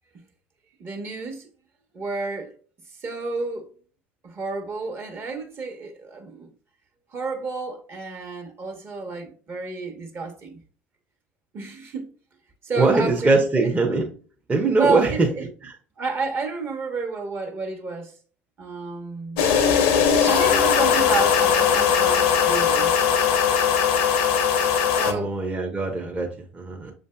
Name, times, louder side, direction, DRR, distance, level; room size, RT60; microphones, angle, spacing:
voice 1, 0.8-1.5 1.9-2.5 3.0-3.7 4.2-6.5 7.1-10.6 11.5-12.1 12.6-13.7 14.8-15.5 16.0-18.1 18.6-19.5 20.2-22.9 24.9-25.3, right 4 dB, 40° right, 1.1 m, -30 dB
voice 2, 12.8-14.1 14.5-15.3 15.6-15.7 25.1-26.9, right 3 dB, 20° right, 0.7 m, -22 dB
sound 1, 19.4-25.1, left 7 dB, 70° left, 0.6 m, -19 dB
6.7 x 2.6 x 2.2 m
hypercardioid pair, 70°, 6 cm